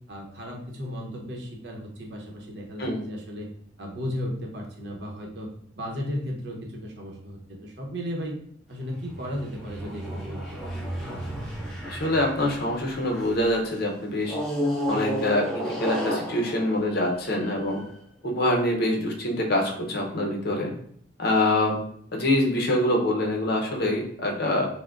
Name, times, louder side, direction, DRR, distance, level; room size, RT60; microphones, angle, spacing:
voice 1, 0.1-3.5 3.8-5.5 5.7-8.4 8.7-10.6, equal, 60° right, 0 dB, 0.8 m, -35 dB
sound 1, 8.8-13.4 14.2-17.8, equal, ahead, 1.1 m, -32 dB
voice 2, 11.8-14.4 14.9-17.8 18.2-20.7 21.2-21.8 22.1-24.7, left 1 dB, 50° left, 0 dB, 0.7 m, -25 dB
5.8 x 2.2 x 2.4 m, 0.63 s
head